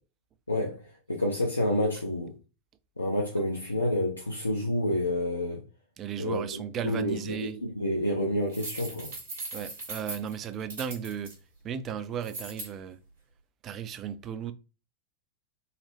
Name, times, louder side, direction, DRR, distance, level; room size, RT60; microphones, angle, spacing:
voice 1, 0.5-0.8 1.1-2.3 3.0-5.6 6.2-9.1, left 1 dB, 80° left, 0.5 m, -29 dB
voice 2, 6.0-7.6 9.5-11.3 11.6-13.0 13.6-14.5, right 8 dB, 30° right, 0.3 m, -35 dB
sound 1, 8.5-11.3 12.2-12.7, right 2 dB, 65° right, 1.5 m, -39 dB
3.9 x 2.0 x 2.9 m
figure-of-eight pair, 90°, 0 cm